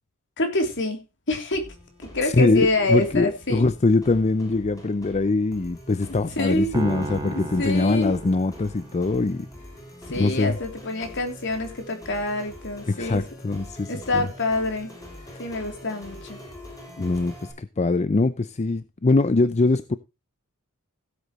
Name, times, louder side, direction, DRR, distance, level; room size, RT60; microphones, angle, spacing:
voice 1, 0.4-1.0 1.3-1.6 2.1-3.7 6.1-6.7 7.5-8.2 10.1-13.2 13.9-14.9 15.4-16.4, left 2 dB, 60° left, 3.4 m, -26 dB
sound 1, 1.5-17.5, equal, 15° left, 6.0 m, -44 dB
voice 2, 2.2-9.5 10.1-10.6 12.9-14.3 15.3-15.4 17.0-20.0, left 3 dB, 30° left, 0.5 m, -23 dB
Piano, 6.7-9.2, right 2 dB, 20° right, 2.5 m, -34 dB
16.5 x 8.2 x 3.2 m
head